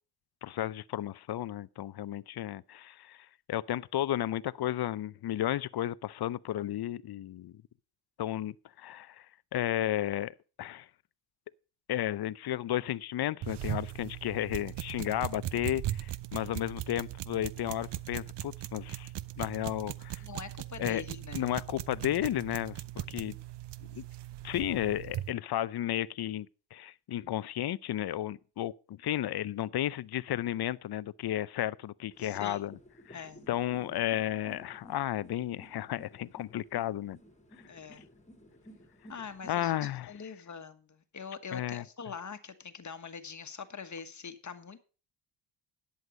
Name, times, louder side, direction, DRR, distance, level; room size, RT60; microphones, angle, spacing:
voice 1, 0.4-7.6 8.2-9.3 9.5-10.9 11.9-19.1 19.4-20.2 20.8-21.0 21.3-23.4 23.9-24.0 24.4-32.8 33.1-33.2 33.5-37.2 39.5-40.1 41.5-41.8, left 12 dB, 50° left, 0.6 m, -33 dB
sound 1, 13.4-25.3, right 14 dB, 60° right, 0.7 m, -39 dB
voice 2, 20.2-21.6 32.2-32.6 33.1-33.5 37.7-38.1 39.1-44.8, left 6 dB, 35° left, 1.4 m, -44 dB
sound 2, 32.1-39.9, equal, 15° left, 2.1 m, -55 dB
11.0 x 8.0 x 5.1 m
cardioid pair, 85°, 48 cm